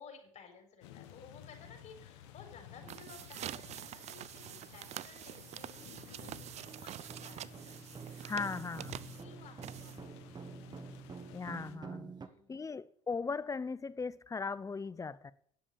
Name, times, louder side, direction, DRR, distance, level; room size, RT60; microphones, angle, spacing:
voice 1, 0.0-8.8 9.1-10.7 12.1-12.7, left 5 dB, 50° left, 4.3 m, -57 dB
sound 1, 0.8-11.8, left 11 dB, 90° left, 1.2 m, -55 dB
sound 2, 1.6-1.7 2.2-2.4 2.8-12.3, right 5 dB, 30° right, 1.2 m, -50 dB
sound 3, 2.7-10.3, right 12 dB, 50° right, 0.5 m, -46 dB
voice 2, 8.2-8.9 11.3-12.1 12.5-15.3, left 4 dB, 20° left, 0.7 m, -38 dB
10.5 x 7.2 x 8.7 m
supercardioid pair, 80°, 14 cm